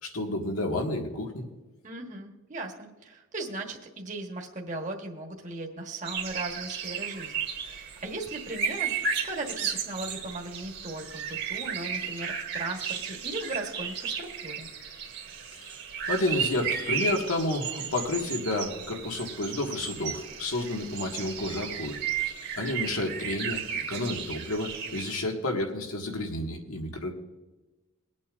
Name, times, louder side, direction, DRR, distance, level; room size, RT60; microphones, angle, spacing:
voice 1, 0.0-1.4 15.5-15.8 16.1-22.0 22.6-27.1, left 2 dB, 90° left, 1 dB, 1.9 m, -30 dB
voice 2, 1.8-8.9 9.2-14.7, right 2 dB, 35° right, 1 dB, 1.4 m, -37 dB
sound 1, 6.0-25.2, right 7 dB, 50° right, 1.6 m, -34 dB
23.0 x 8.5 x 2.6 m, 1.2 s
head